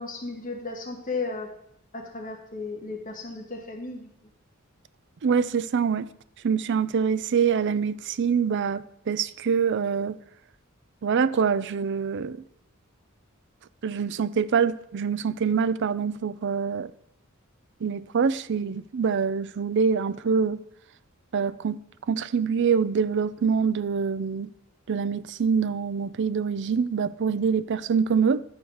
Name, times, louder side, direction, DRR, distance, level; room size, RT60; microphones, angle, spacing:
voice 1, 0.0-1.5 1.9-4.1, left 3 dB, 40° left, 1.3 m, -34 dB
voice 2, 5.2-6.1 6.4-10.2 11.0-12.4 13.8-16.9 17.8-20.6 21.3-21.8 22.1-24.5 24.9-28.4, right 6 dB, 55° right, 0.4 m, -25 dB
11.5 x 4.7 x 7.0 m
head